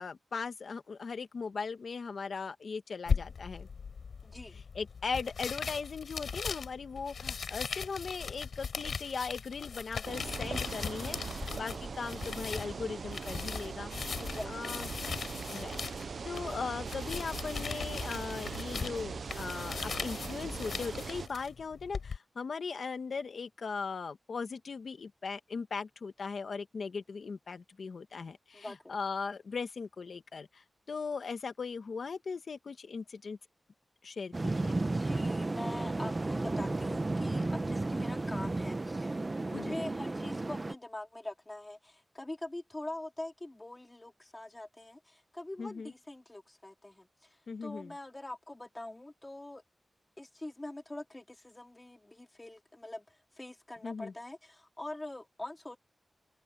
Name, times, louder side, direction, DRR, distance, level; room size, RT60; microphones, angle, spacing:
voice 1, 0.0-3.7 4.5-11.2 11.5-13.9 14.5-14.9 15.5-33.4 34.0-34.8 39.5-39.8 45.6-45.9 47.5-47.9 53.8-54.1, left 5 dB, 65° left, 1.6 m, -39 dB
sound 1, 3.1-22.2, left 5 dB, 80° left, 4.9 m, -39 dB
voice 2, 4.2-4.6 14.2-14.8 28.5-29.0 34.8-49.6 50.2-55.8, left 1 dB, 20° left, 3.3 m, -44 dB
sound 2, 10.0-21.3, right 5 dB, 65° right, 0.6 m, -40 dB
sound 3, 34.3-40.7, right 2 dB, 25° right, 0.9 m, -33 dB
open air
wide cardioid pair, 125°, 0 cm